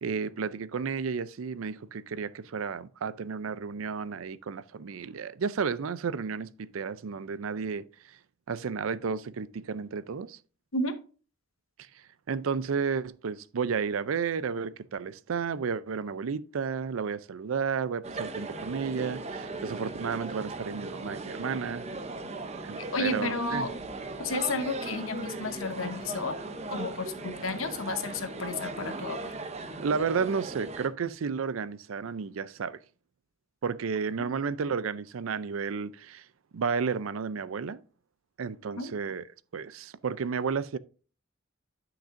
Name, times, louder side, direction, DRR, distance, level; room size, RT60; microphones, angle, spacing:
voice 1, 0.0-7.8 8.5-10.4 12.3-21.8 22.6-23.7 29.8-32.8 33.6-36.2 36.5-37.8 38.4-39.2 39.5-40.8, right 6 dB, 85° right, 0.5 m, -32 dB
sound 1, 18.0-30.9, right 2 dB, 35° right, 0.7 m, -38 dB
voice 2, 22.9-23.8 24.2-26.3 26.7-29.3 38.8-38.9, left 2 dB, 85° left, 1.0 m, -32 dB
10.0 x 5.9 x 2.6 m
head